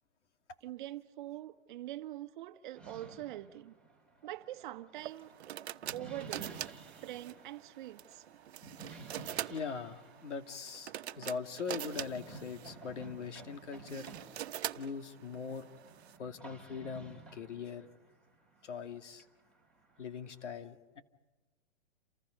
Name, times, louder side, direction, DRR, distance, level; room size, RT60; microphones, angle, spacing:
voice 1, 0.6-3.7 4.2-5.3 5.9-6.6 7.0-8.2, right 14 dB, 45° right, 1.2 m, -44 dB
sound 1, 2.7-20.4, right 3 dB, 5° left, 2.9 m, -54 dB
sound 2, 5.0-16.2, right 11 dB, 65° right, 1.1 m, -44 dB
voice 2, 9.5-14.1 14.8-15.7 16.2-17.9 18.6-19.3 20.0-21.0, left 5 dB, 90° left, 2.6 m, -41 dB
29.5 x 28.5 x 5.3 m
hypercardioid pair, 155°, 35 cm